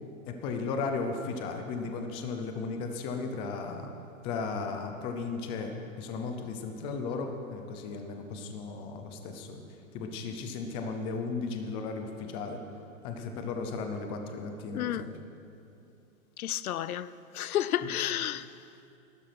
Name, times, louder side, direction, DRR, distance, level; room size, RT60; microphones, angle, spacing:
voice 1, 0.3-3.9 4.2-9.6 9.9-12.6 13.0-15.2 17.8-17.9, left 4 dB, 15° left, 0.5 m, -35 dB
voice 2, 14.7-15.1 16.4-17.1 17.3-18.4, left 11 dB, 85° left, 0.6 m, -31 dB
14.5 x 12.0 x 5.9 m
hypercardioid pair, 155°, 42 cm